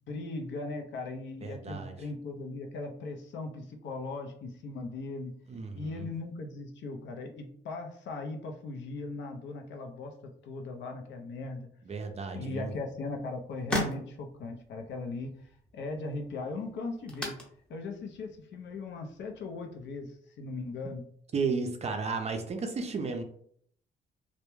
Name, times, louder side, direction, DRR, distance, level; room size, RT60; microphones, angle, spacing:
voice 1, 0.1-5.3 5.7-11.7 12.3-15.3 15.7-17.3 17.7-21.0 22.1-22.2, left 3 dB, 65° left, 4 dB, 0.5 m, -38 dB
voice 2, 1.4-1.9 5.5-6.1 11.9-12.7 21.3-23.2, right 4 dB, 35° right, 5 dB, 0.4 m, -33 dB
sound 1, 12.8-20.1, left 1 dB, 5° left, 0.7 m, -41 dB
2.2 x 2.1 x 3.0 m, 0.64 s
cardioid pair, 90°, 20 cm